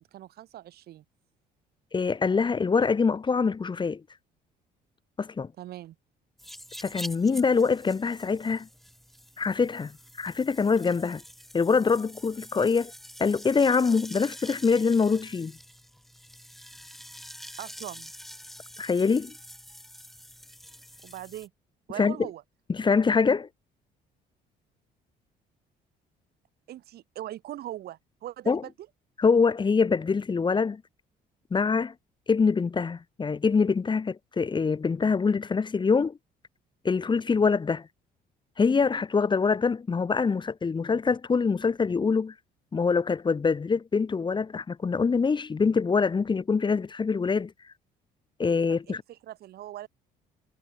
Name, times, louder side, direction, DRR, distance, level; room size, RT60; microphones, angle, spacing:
voice 1, 0.1-1.0 5.6-5.9 17.6-18.1 21.0-21.5 21.9-22.4 26.7-28.7 48.7-49.9, right 13 dB, 70° right, 4.7 m, -40 dB
voice 2, 1.9-4.0 5.2-5.5 6.8-8.7 9.4-9.9 10.2-11.2 11.5-12.9 13.2-15.5 18.8-19.3 22.0-22.2 22.7-23.5 28.5-28.6 29.2-30.8 31.5-31.9 32.3-36.2 36.8-37.9 38.6-42.3 42.7-47.5 48.4-49.0, left 5 dB, 25° left, 3.0 m, -24 dB
sound 1, 6.4-21.5, equal, ahead, 6.9 m, -46 dB
cardioid pair, 110°, 17 cm